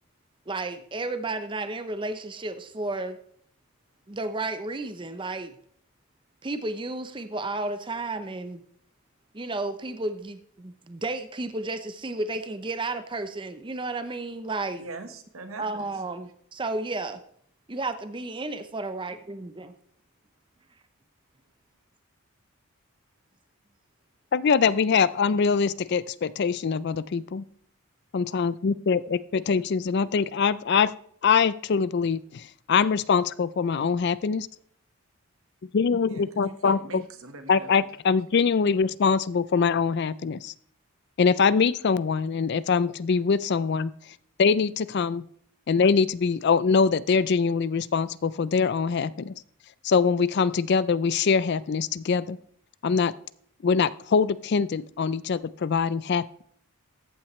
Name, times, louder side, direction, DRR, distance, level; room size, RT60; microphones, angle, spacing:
voice 1, 0.5-3.2 4.1-5.5 6.4-8.6 9.3-14.8 15.6-17.2 17.7-19.7, right 2 dB, 20° right, 9 dB, 0.6 m, -32 dB
voice 2, 14.7-15.8 36.1-37.9, right 3 dB, 70° right, 7 dB, 1.4 m, -42 dB
voice 3, 24.3-27.4 28.1-30.9 31.2-32.4 32.7-34.5 35.7-37.0 37.5-40.5 41.2-43.9 44.4-45.2 45.7-49.3 49.8-52.4 52.8-53.1 53.6-56.2, left 5 dB, 50° left, 18 dB, 0.4 m, -23 dB
14.0 x 8.8 x 3.2 m, 0.62 s
head